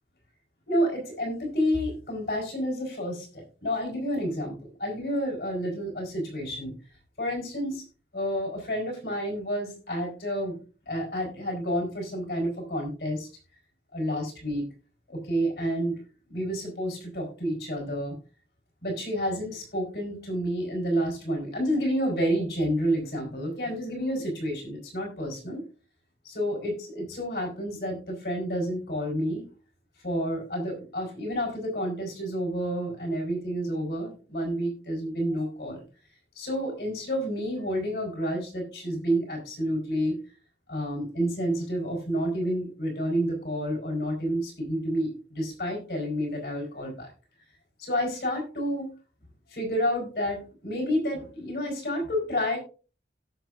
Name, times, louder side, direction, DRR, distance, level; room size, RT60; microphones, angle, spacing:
voice 1, 0.7-6.7 7.2-7.8 8.1-10.6 10.9-13.3 13.9-14.6 15.1-16.0 16.3-18.1 18.8-25.6 26.2-29.5 30.0-35.8 36.3-40.2 40.7-47.1 47.8-48.9 49.5-52.6, equal, 65° left, 1 dB, 4.7 m, -29 dB
17.0 x 6.4 x 2.6 m, 0.36 s
head